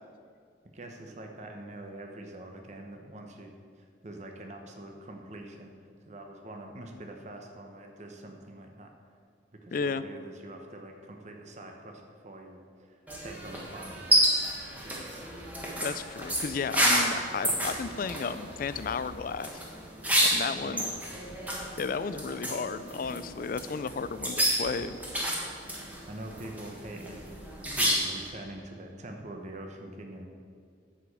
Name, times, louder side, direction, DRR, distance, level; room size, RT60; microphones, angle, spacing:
voice 1, 0.7-3.5 3.8-5.7 6.0-8.9 9.5-14.4 14.7-15.3 20.1-20.3 20.6-21.3 26.1-27.4 27.7-30.3, right 1 dB, 40° right, 3 dB, 0.9 m, -45 dB
voice 2, 9.7-10.0 15.8-19.6 20.3-20.9 21.8-25.0, left 5 dB, 50° left, 14 dB, 0.4 m, -33 dB
sound 1, 13.1-28.3, equal, 10° right, 1.4 m, -30 dB
10.5 x 5.0 x 7.1 m, 2.2 s
head